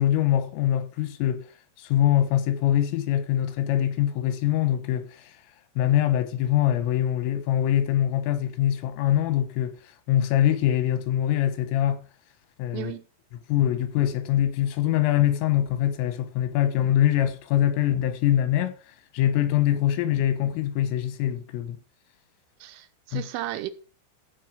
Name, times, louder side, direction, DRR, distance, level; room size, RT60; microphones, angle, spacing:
voice 1, 0.0-1.4 1.8-5.3 5.8-9.8 10.1-12.0 12.6-12.9 13.5-18.8 19.1-21.8 23.1-23.2, left 11 dB, 85° left, 3.8 m, -23 dB
voice 2, 12.7-13.1 22.6-23.7, right 15 dB, 80° right, 3.6 m, -34 dB
15.0 x 5.3 x 6.2 m
omnidirectional pair, 5.8 m